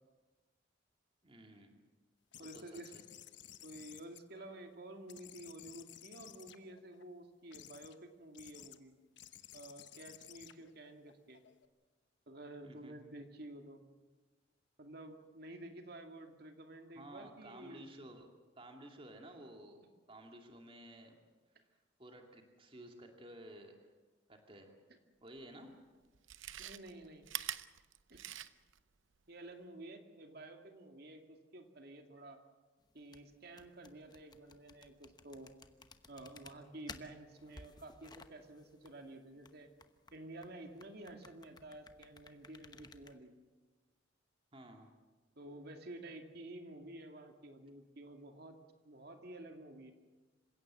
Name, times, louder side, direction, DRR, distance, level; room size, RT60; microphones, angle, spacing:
voice 1, 1.2-1.8 2.4-3.0 12.6-12.9 16.9-18.3 18.6-19.8 20.1-21.2 21.6-21.7 22.0-23.9 24.3-24.7 25.2-25.7 44.5-44.9, right 1 dB, 30° right, 3 dB, 2.5 m, -54 dB
sound 1, 2.3-4.7 5.1-7.0 7.5-8.0 8.3-8.8 9.2-11.7, left 11 dB, 65° left, 1.1 m, -56 dB
voice 2, 2.4-2.9 3.6-8.9 9.5-11.4 12.3-13.8 14.8-17.9 26.6-27.2 28.1-28.2 29.3-32.4 32.9-35.5 36.1-39.7 40.1-43.3 45.4-48.6 48.8-49.9, right 1 dB, 55° right, 5 dB, 2.3 m, -51 dB
Chewing mastication, 25.4-25.5 26.1-28.8 29.2-29.3, right 12 dB, 80° right, 0.8 m, -44 dB
sound 2, 32.9-43.2, left 3 dB, 20° left, 1.0 m, -57 dB
27.0 x 16.5 x 7.7 m, 1.3 s
head